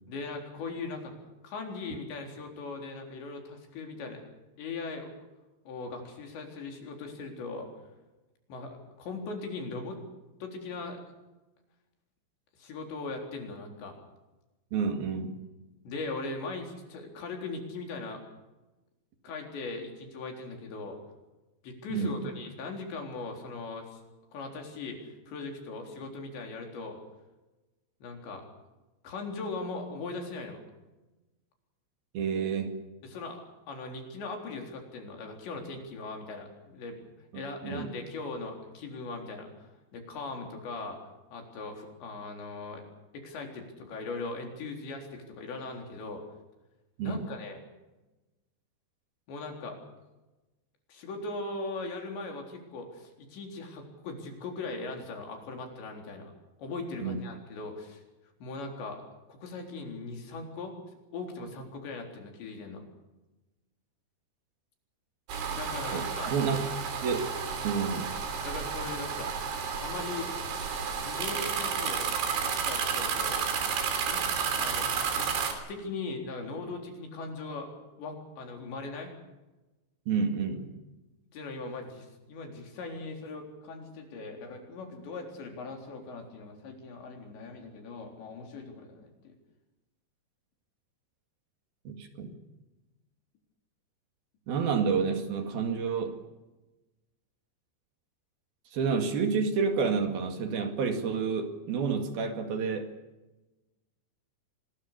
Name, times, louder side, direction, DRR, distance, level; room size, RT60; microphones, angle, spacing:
voice 1, 0.1-1.1 1.4-4.2 4.6-5.1 5.7-7.7 8.5-10.0 10.4-11.0 12.6-13.9 15.8-18.2 19.2-21.0 21.6-24.0 24.3-25.0 25.3-27.0 28.0-28.4 29.0-30.6 33.0-37.0 37.3-41.0 41.3-42.8 43.1-46.2 47.0-47.6 49.3-49.8 50.9-56.3 56.6-58.0 58.4-59.0 59.3-60.7 61.1-62.8 65.5-66.3 68.4-70.3 71.0-72.0 72.4-73.4 74.1-74.3 74.6-74.9 75.2-77.7 78.0-79.1 81.3-89.4, left 3 dB, 75° left, 2 dB, 6.1 m, -39 dB
voice 2, 14.7-15.4 21.9-22.3 32.1-32.8 37.6-37.9 47.0-47.3 57.0-57.2 65.9-66.6 67.0-67.2 67.6-68.2 80.1-80.7 91.9-92.4 94.5-96.2 98.7-102.9, right 5 dB, 60° right, 5 dB, 3.8 m, -29 dB
sound 1, 65.3-75.5, right 6 dB, 90° right, 5.6 m, -31 dB
25.0 x 20.5 x 6.7 m, 1.1 s
omnidirectional pair, 5.1 m